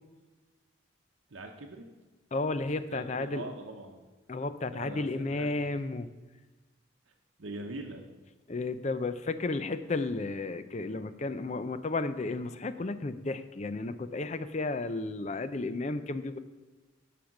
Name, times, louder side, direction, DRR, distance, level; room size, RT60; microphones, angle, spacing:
voice 1, 1.3-1.9 2.7-4.0 4.6-5.7 7.4-8.0, right 2 dB, 70° right, 1 dB, 0.9 m, -42 dB
voice 2, 2.3-3.4 4.3-6.1 8.5-16.4, left 3 dB, 35° left, 12 dB, 0.5 m, -33 dB
11.5 x 5.1 x 5.9 m, 1.2 s
head